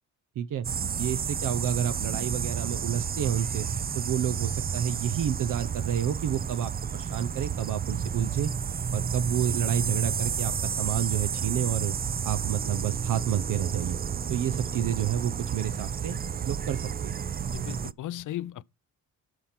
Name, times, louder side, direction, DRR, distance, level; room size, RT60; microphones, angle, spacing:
sound 1, 0.6-17.9, right 7 dB, 30° right, 0.5 m, -31 dB
voice 1, 1.0-3.7 3.9-8.5 8.9-12.0 12.2-14.0 14.3-16.2 16.5-17.2, right 10 dB, 65° right, 0.7 m, -30 dB
voice 2, 17.5-18.6, left 13 dB, 65° left, 0.6 m, -36 dB
12.5 x 4.4 x 5.8 m
cardioid pair, 90°, 34 cm